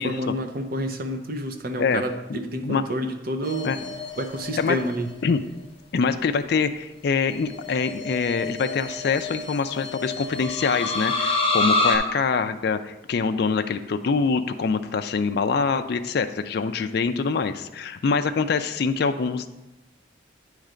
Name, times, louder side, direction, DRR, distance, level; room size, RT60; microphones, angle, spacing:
voice 1, 0.0-3.7 4.2-5.1, equal, 45° right, 5 dB, 0.6 m, -29 dB
sound 1, 3.4-5.1 7.4-12.0, left 2 dB, 30° left, 0.8 m, -28 dB
voice 2, 5.9-19.5, left 5 dB, 55° left, 8 dB, 0.3 m, -24 dB
9.1 x 3.2 x 5.0 m, 0.99 s
head